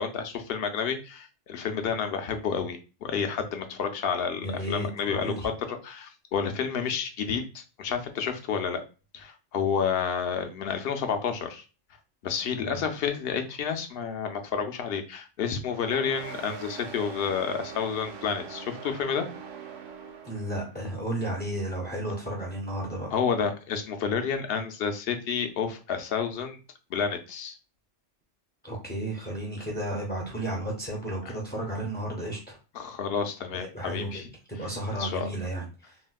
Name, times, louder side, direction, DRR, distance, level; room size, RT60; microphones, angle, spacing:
voice 1, 0.0-8.8 9.1-11.6 12.2-19.3 23.1-26.6 26.9-27.6 31.2-31.3 32.7-34.3 34.9-35.3, left 6 dB, 65° left, 6 dB, 0.8 m, -30 dB
voice 2, 4.4-5.5 12.5-12.9 20.2-23.1 28.6-32.6 33.5-36.0, right 1 dB, 10° left, -2 dB, 0.5 m, -33 dB
sound 1, 15.7-20.8, right 6 dB, 60° right, 0.5 m, -42 dB
4.1 x 2.1 x 2.2 m, 0.33 s
omnidirectional pair, 1.2 m